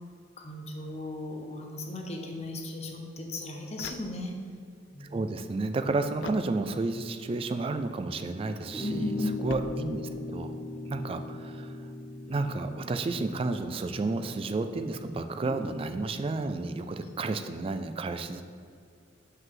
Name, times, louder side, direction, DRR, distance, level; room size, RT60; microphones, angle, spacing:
voice 1, 0.4-4.3 4.9-5.3 8.8-9.5 15.4-15.6 17.0-17.1, left 2 dB, 35° left, 2 dB, 0.8 m, -36 dB
sound 1, 3.7-4.6 6.2-7.1 9.5-10.4, left 4 dB, 70° left, 0.3 m, -45 dB
voice 2, 5.0-9.1 9.4-10.6 10.8-11.9 12.3-18.4, right 3 dB, 30° right, 8 dB, 0.3 m, -31 dB
sound 2, 8.7-15.1, left 2 dB, 10° right, 1.4 m, -39 dB
5.9 x 5.4 x 3.8 m, 2.3 s
head